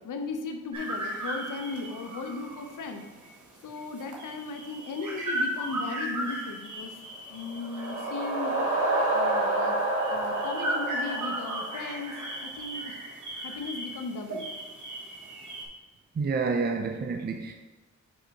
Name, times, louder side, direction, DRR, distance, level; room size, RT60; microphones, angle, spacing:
voice 1, 0.0-3.1 3.6-6.9 7.3-8.6 9.1-9.8 10.1-12.1 12.4-13.0 13.4-14.5, left 3 dB, 80° left, 5 dB, 0.7 m, -36 dB
sound 1, 0.7-15.7, right 1 dB, 70° right, 1.5 m, -36 dB
sound 2, 7.3-12.2, right 2 dB, 90° right, 2.1 m, -29 dB
voice 2, 16.2-17.5, right 4 dB, 30° right, 4 dB, 0.5 m, -28 dB
6.4 x 4.1 x 4.6 m, 1.2 s
wide cardioid pair, 105°, 31 cm